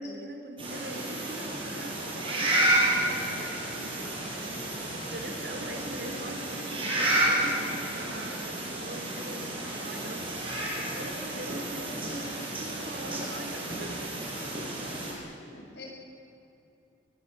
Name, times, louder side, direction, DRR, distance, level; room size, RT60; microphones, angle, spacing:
voice 1, 0.0-14.1, right 1 dB, 65° right, 4 dB, 4.3 m, -42 dB
sound 1, 0.6-15.1, right 1 dB, 30° right, 8.0 m, -31 dB
voice 2, 14.6-15.8, left 2 dB, 70° left, 0 dB, 7.5 m, -48 dB
25.0 x 20.5 x 8.7 m, 2.7 s
head